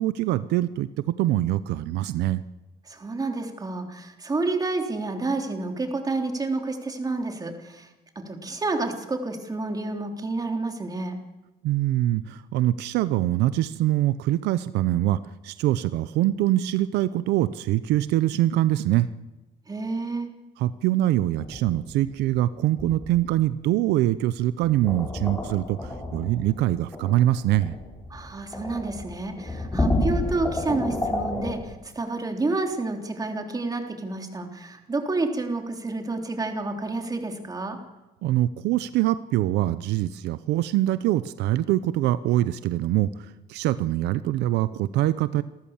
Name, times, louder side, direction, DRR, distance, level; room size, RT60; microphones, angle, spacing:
voice 1, 0.0-2.4 11.6-19.1 20.6-27.7 38.2-45.4, right 14 dB, 85° right, 14 dB, 0.7 m, -24 dB
voice 2, 2.9-7.9 8.3-11.2 19.7-20.3 28.1-37.8, right 3 dB, 20° right, 4 dB, 3.6 m, -29 dB
sound 1, 21.4-22.5 22.8-23.5 24.6-31.5, left 1 dB, 15° left, 7.6 m, -30 dB
28.0 x 14.0 x 7.3 m, 1.1 s
cardioid pair, 110°, 17 cm